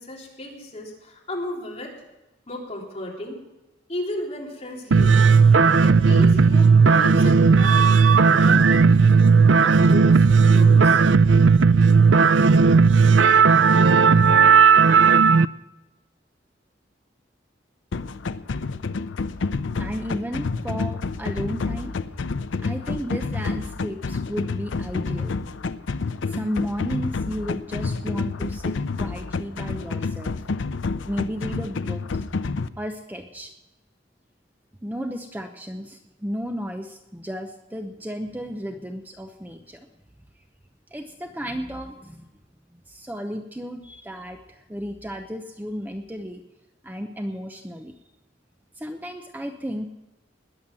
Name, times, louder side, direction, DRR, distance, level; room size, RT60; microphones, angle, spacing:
voice 1, 0.0-1.9 2.5-3.4 3.9-5.2 5.8-11.0, left 1 dB, 35° left, -3 dB, 3.7 m, -35 dB
sound 1, 4.9-15.5, right 5 dB, 80° right, 0.5 m, -15 dB
sound 2, 17.9-32.7, left 4 dB, 85° left, 0.6 m, -29 dB
voice 2, 19.8-21.9 22.6-25.4 26.3-30.3 31.1-32.0 32.8-33.5 34.8-39.8 40.9-42.2 42.7-46.4 46.8-47.9 48.8-49.9, equal, 10° right, 5 dB, 0.8 m, -33 dB
20.5 x 7.3 x 7.6 m, 1.0 s
head